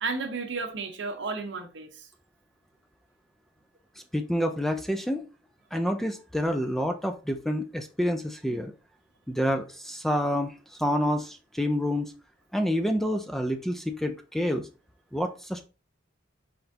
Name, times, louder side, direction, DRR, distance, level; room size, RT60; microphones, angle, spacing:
voice 1, 0.0-2.1, right 4 dB, 65° right, 0.8 m, -33 dB
voice 2, 4.1-5.2 5.7-8.7 9.3-10.5 10.8-12.1 12.5-14.7 15.1-15.6, equal, ahead, 0.3 m, -28 dB
4.4 x 4.0 x 2.7 m
head